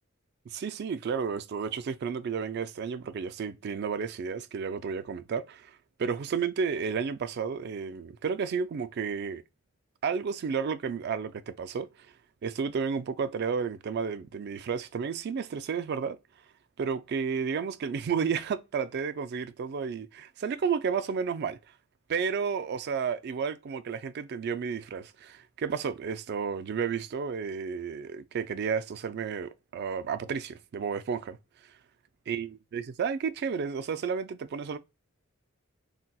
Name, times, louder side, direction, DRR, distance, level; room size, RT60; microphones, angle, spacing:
voice 1, 0.5-5.7 6.0-9.4 10.0-11.9 12.4-16.2 16.8-21.6 22.1-31.4 32.3-34.8, right 6 dB, 50° right, 0.3 m, -32 dB
4.0 x 2.2 x 2.2 m
head